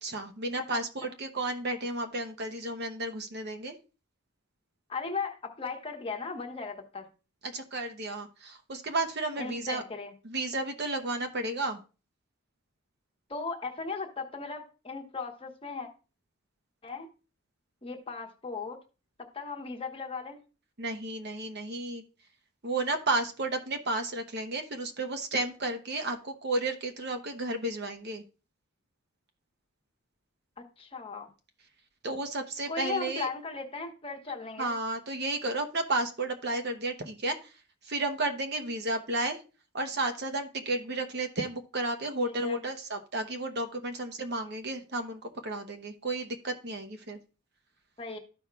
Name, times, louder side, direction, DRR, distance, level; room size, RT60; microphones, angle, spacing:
voice 1, 0.0-3.8 7.4-9.8 10.2-11.8 20.8-22.0 22.6-28.2 32.0-33.3 34.6-37.4 37.8-39.4 39.7-47.2, right 2 dB, 55° right, 0.9 m, -32 dB
voice 2, 4.9-7.1 9.4-10.1 13.3-15.9 16.8-17.1 17.8-18.8 19.2-20.4 30.6-31.3 32.7-34.8 42.2-42.6 48.0-48.2, left 4 dB, 25° left, 1.1 m, -37 dB
13.5 x 5.3 x 2.3 m
head